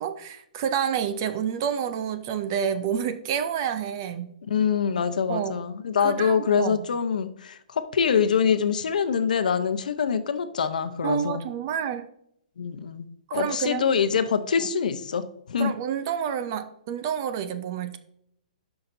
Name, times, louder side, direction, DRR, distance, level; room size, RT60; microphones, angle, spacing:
voice 1, 0.0-4.3 5.3-5.6 6.0-6.8 11.0-12.1 13.3-13.8 14.6-14.7 15.6-18.0, right 8 dB, 25° right, 10 dB, 0.4 m, -29 dB
voice 2, 4.5-11.4 12.6-15.7, left 7 dB, 65° left, 10 dB, 0.7 m, -25 dB
11.0 x 5.8 x 2.6 m, 0.72 s
hypercardioid pair, 175°, 5 cm